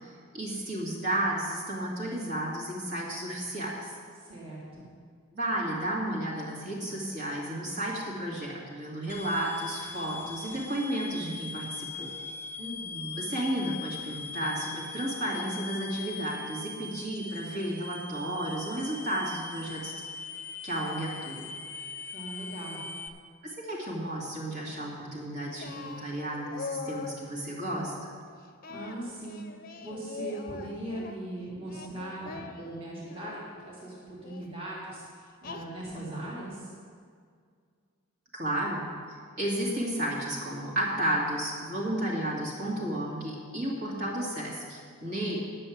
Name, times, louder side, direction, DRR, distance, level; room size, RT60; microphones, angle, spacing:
voice 1, 0.0-3.9 5.3-12.1 13.2-19.9 20.6-21.5 23.4-28.1 38.3-38.8 39.4-45.4, right 1 dB, 50° right, -5 dB, 2.5 m, -32 dB
voice 2, 4.2-4.8 12.6-13.2 22.1-22.8 28.7-29.4 29.8-35.0 35.4-36.7, right 1 dB, 25° right, -7 dB, 2.3 m, -39 dB
sound 1, 9.1-23.1, left 4 dB, 10° left, 0.4 m, -41 dB
Singing, 25.6-27.3 28.6-31.2 31.6-33.4 34.2-34.5 35.4-36.1, left 4 dB, 40° left, 0.7 m, -42 dB
10.5 x 6.7 x 7.9 m, 2.1 s
head